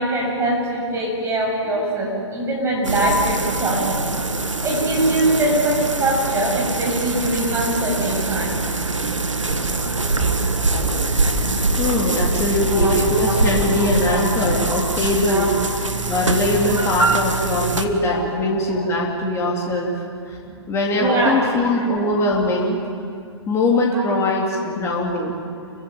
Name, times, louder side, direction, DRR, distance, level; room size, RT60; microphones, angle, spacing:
voice 1, 0.0-4.0 4.6-8.6 12.7-12.9 13.8-14.2 14.7-14.8 15.3-15.6 18.1-18.2 20.4-20.5 20.9-21.5 23.9-24.0, right 1 dB, 15° right, -2 dB, 7.4 m, -22 dB
sound 1, 2.8-17.9, right 3 dB, 85° right, 1.7 m, -23 dB
voice 2, 11.8-15.5 16.1-19.9 20.3-20.4 20.7-22.8 23.5-25.4, left 2 dB, 15° left, -2 dB, 3.6 m, -21 dB
28.5 x 15.5 x 9.0 m, 2.3 s
figure-of-eight pair, 120°, 16 cm